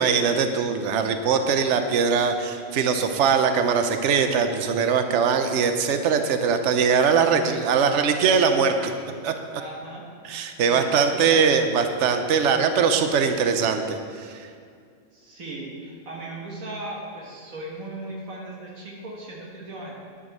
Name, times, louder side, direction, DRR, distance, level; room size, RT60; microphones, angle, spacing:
voice 1, 0.0-8.9 9.2-9.3 10.2-14.5, right 6 dB, 65° right, 7 dB, 1.1 m, -21 dB
voice 2, 9.6-10.0 10.6-11.2 15.1-20.0, right 2 dB, 85° right, -3 dB, 2.2 m, -37 dB
11.0 x 6.3 x 6.5 m, 2.2 s
omnidirectional pair, 1.4 m